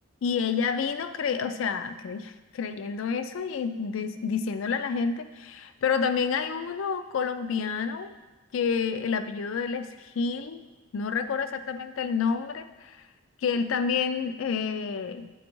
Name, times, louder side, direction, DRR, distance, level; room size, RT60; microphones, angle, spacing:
voice 1, 0.2-8.1 8.5-10.6 10.9-13.0 13.4-15.3, left 6 dB, 70° left, 10 dB, 0.4 m, -29 dB
10.5 x 4.3 x 3.0 m, 1.2 s
head